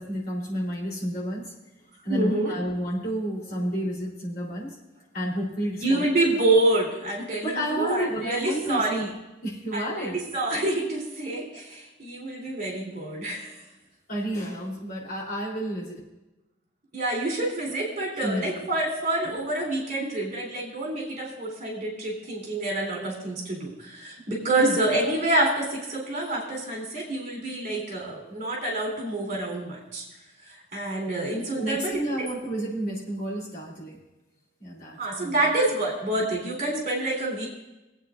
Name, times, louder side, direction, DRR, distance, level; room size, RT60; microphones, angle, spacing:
voice 1, 0.0-1.5 2.0-4.8 5.1-6.4 7.4-9.1 9.4-10.2 14.1-16.0 18.2-18.6 24.6-24.8 31.5-34.0 34.6-35.5, equal, 50° left, -5 dB, 3.8 m, -31 dB
voice 2, 2.1-2.6 5.8-9.1 9.7-13.6 16.9-30.0 30.4-32.0 35.0-37.5, right 2 dB, 40° right, -2 dB, 3.9 m, -27 dB
21.5 x 8.7 x 2.6 m, 1.0 s
head